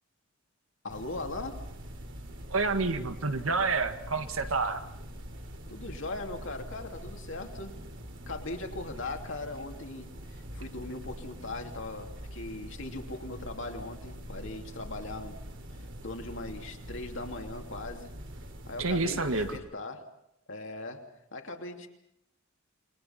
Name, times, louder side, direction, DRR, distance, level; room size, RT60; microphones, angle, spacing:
voice 1, 0.8-1.7 5.7-7.8 8.3-15.4 16.0-18.2 18.7-20.1 20.5-21.9, left 2 dB, 65° left, 4 dB, 2.8 m, -39 dB
sound 1, 0.9-19.6, equal, 65° right, 3.0 m, -44 dB
voice 2, 2.5-4.8 18.8-19.6, right 3 dB, 85° right, 8 dB, 1.8 m, -29 dB
28.0 x 22.5 x 5.9 m, 0.78 s
head